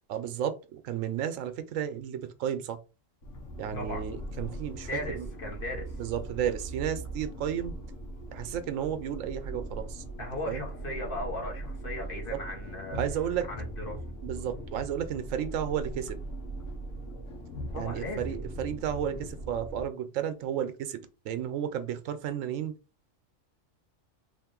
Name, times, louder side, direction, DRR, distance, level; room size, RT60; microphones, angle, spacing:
voice 1, 0.1-2.8 3.6-4.9 5.1-5.3 6.0-7.7 8.3-10.0 10.5-10.6 12.3-12.4 12.9-13.5 14.2-16.2 17.8-22.7, right 9 dB, 80° right, 1.0 m, -33 dB
sound 1, 3.2-19.8, right 1 dB, 75° left, 1.2 m, -40 dB
voice 2, 4.8-6.0 10.2-13.0 13.5-14.0 17.7-18.4, left 2 dB, 45° left, 1.3 m, -37 dB
3.5 x 2.5 x 3.6 m
omnidirectional pair, 1.3 m